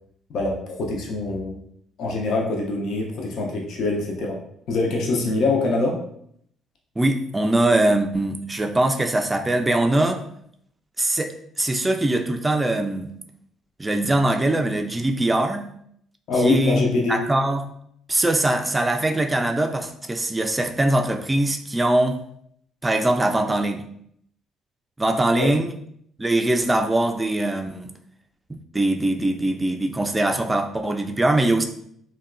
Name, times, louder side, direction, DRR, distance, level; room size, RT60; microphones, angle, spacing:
voice 1, 0.3-1.6 2.0-4.4 4.7-6.0 16.3-17.2 25.3-25.5, left 2 dB, 65° left, 0 dB, 0.5 m, -24 dB
voice 2, 7.0-10.2 11.0-13.1 13.8-15.6 16.4-17.7 18.1-22.2 22.8-23.8 25.0-25.7 26.2-27.9 28.7-31.6, right 1 dB, 20° right, 5 dB, 0.4 m, -22 dB
2.8 x 2.2 x 2.4 m, 0.68 s
hypercardioid pair, 50°, 0 cm